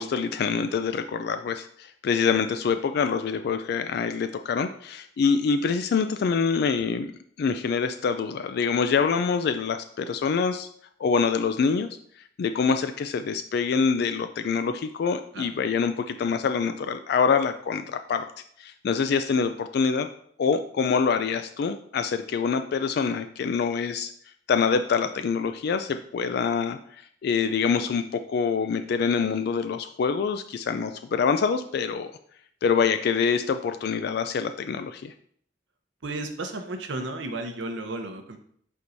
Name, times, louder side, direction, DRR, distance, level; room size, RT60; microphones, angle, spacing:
voice 1, 0.0-7.1 7.4-10.7 11.0-11.9 12.4-18.2 18.6-20.1 20.4-24.1 24.5-26.8 27.2-32.1 32.6-35.1, left 5 dB, 60° left, 9 dB, 0.3 m, -25 dB
voice 2, 36.0-38.4, right 2 dB, 90° right, 6 dB, 0.8 m, -33 dB
8.3 x 4.6 x 2.6 m, 0.63 s
head